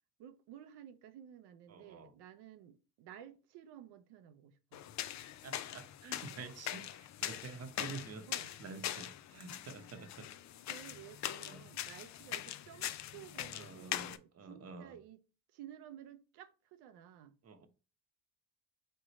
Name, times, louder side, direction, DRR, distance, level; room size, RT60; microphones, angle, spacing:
voice 1, 0.2-4.8 8.3-8.5 10.7-15.2 15.5-17.4, right 10 dB, 70° right, 0.7 m, -54 dB
voice 2, 1.7-2.1 5.4-10.3 11.4-11.7 13.5-15.0 17.4-17.7, right 4 dB, 35° right, 0.9 m, -49 dB
sound 1, 4.7-14.2, left 12 dB, 45° left, 0.4 m, -42 dB
3.6 x 3.3 x 4.0 m
supercardioid pair, 90°, 42 cm